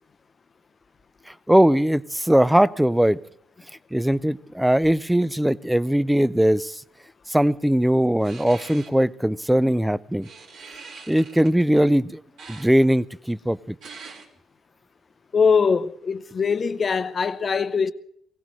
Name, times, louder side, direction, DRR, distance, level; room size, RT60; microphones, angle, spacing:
voice 1, 1.5-3.2 3.9-6.7 7.3-10.3 11.1-12.2 12.5-13.6, right 1 dB, 5° right, 0.5 m, -20 dB
sound 1, 8.2-8.9 10.2-11.6 12.4-12.7 13.8-14.3, right 4 dB, 80° right, 3.8 m, -42 dB
voice 2, 15.3-17.9, left 5 dB, 40° left, 0.7 m, -22 dB
23.5 x 17.0 x 3.2 m
cardioid pair, 90°, 0 cm